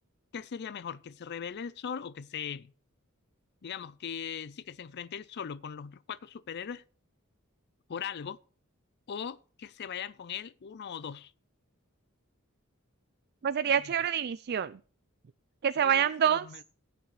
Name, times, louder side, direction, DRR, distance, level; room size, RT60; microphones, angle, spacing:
voice 1, 0.3-2.7 3.6-6.8 7.9-8.4 9.1-11.3 15.8-16.6, left 7 dB, 50° left, 0.4 m, -39 dB
voice 2, 13.4-14.8 15.6-16.5, right 8 dB, 50° right, 0.4 m, -26 dB
15.5 x 9.4 x 3.3 m
head